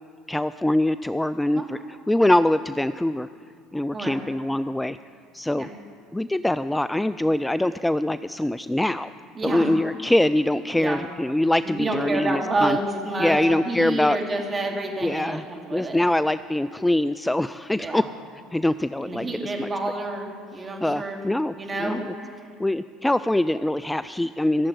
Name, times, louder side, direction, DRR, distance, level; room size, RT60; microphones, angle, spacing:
voice 1, 0.3-1.8 2.1-3.3 3.7-5.0 5.3-5.7 6.1-9.1 9.4-12.8 13.2-14.2 15.0-15.4 15.7-18.0 18.5-19.7 20.8-21.5 21.8-22.1 22.6-24.7, left 1 dB, 5° left, 14 dB, 0.3 m, -23 dB
voice 2, 9.3-9.7 10.8-11.0 11.6-16.0 17.8-18.0 19.0-21.2 21.6-22.5, right 2 dB, 25° right, 1 dB, 3.0 m, -29 dB
15.5 x 7.6 x 9.4 m, 2.3 s
hypercardioid pair, 75°, 0 cm